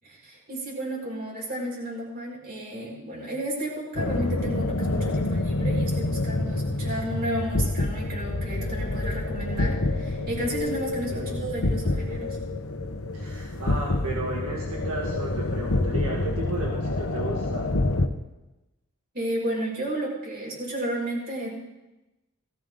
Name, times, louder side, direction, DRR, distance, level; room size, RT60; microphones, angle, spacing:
voice 1, 0.0-12.4 19.1-21.5, right 1 dB, 45° right, -5 dB, 6.7 m, -32 dB
sound 1, 3.9-18.1, left 2 dB, 70° left, 1.0 m, -27 dB
voice 2, 11.1-11.4 13.1-17.7, right 1 dB, 80° right, -2 dB, 1.9 m, -34 dB
19.0 x 15.0 x 3.8 m, 1.0 s
head